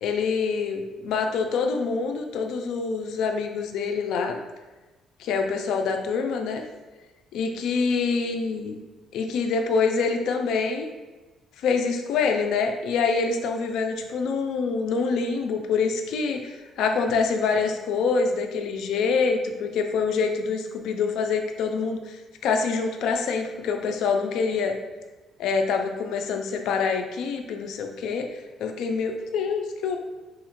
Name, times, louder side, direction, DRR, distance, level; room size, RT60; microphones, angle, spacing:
voice 1, 0.0-4.4 5.2-6.6 7.3-8.8 9.1-10.9 11.6-24.7 25.4-28.3 28.6-30.0, left 5 dB, 75° left, 5 dB, 0.4 m, -26 dB
4.0 x 2.4 x 3.0 m, 1.2 s
cardioid pair, 130°, 0 cm